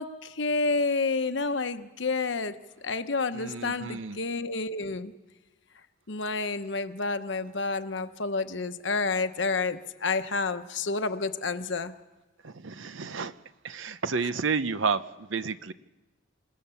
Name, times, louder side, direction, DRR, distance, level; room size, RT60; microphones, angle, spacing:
voice 1, 0.0-2.6 2.8-5.1 6.1-11.9, left 3 dB, 65° left, 9 dB, 1.0 m, -29 dB
voice 2, 3.3-4.2 12.4-13.3 13.6-15.0 15.3-15.7, right 5 dB, 70° right, 13 dB, 0.8 m, -30 dB
27.5 x 18.0 x 7.1 m, 1.1 s
head